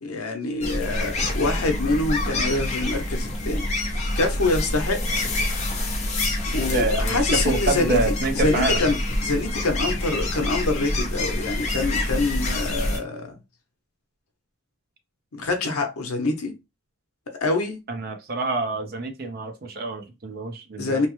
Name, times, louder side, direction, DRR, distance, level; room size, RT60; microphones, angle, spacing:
voice 1, 0.0-3.7 4.2-5.2 6.5-8.0 8.3-13.4 15.3-16.5 17.4-17.8 20.8-21.1, left 2 dB, 90° left, 0.7 m, -25 dB
sound 1, 0.6-13.0, left 1 dB, 30° left, 0.6 m, -26 dB
voice 2, 6.7-7.2 7.4-8.8 17.9-21.1, right 2 dB, 45° right, 0.5 m, -26 dB
3.0 x 2.0 x 2.9 m
head